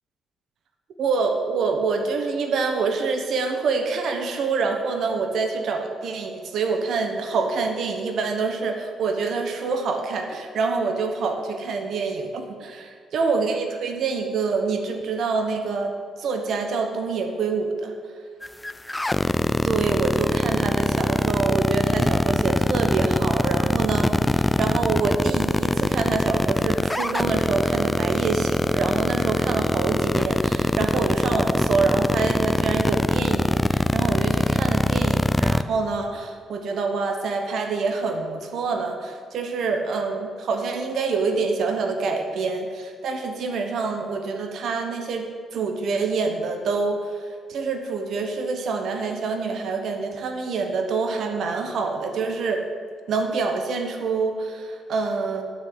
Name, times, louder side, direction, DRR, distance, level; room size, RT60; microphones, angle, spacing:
voice 1, 1.0-15.9 16.2-17.9 19.6-52.6 53.1-55.4, right 4 dB, 60° right, 4 dB, 1.3 m, -26 dB
sound 1, 18.4-35.6, left 1 dB, 10° left, 0.3 m, -21 dB
11.0 x 6.1 x 8.6 m, 2.1 s
cardioid pair, 155°, 0 cm